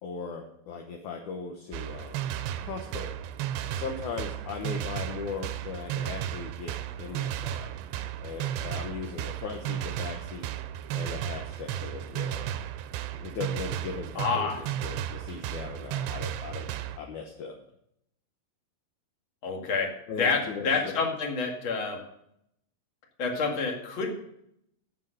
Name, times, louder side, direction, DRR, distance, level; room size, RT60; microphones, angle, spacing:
voice 1, 0.0-2.2 2.6-3.2 3.7-7.7 8.2-10.5 10.9-12.5 13.1-16.7 17.0-17.6 20.1-21.0, left 5 dB, 70° left, 2 dB, 1.9 m, -38 dB
sound 1, 1.7-17.0, right 11 dB, 85° right, 2.7 m, -34 dB
voice 2, 14.2-14.6 19.4-19.9 20.2-22.0 23.2-24.1, left 4 dB, 40° left, 1 dB, 2.1 m, -28 dB
16.0 x 5.6 x 6.4 m, 0.75 s
omnidirectional pair, 4.8 m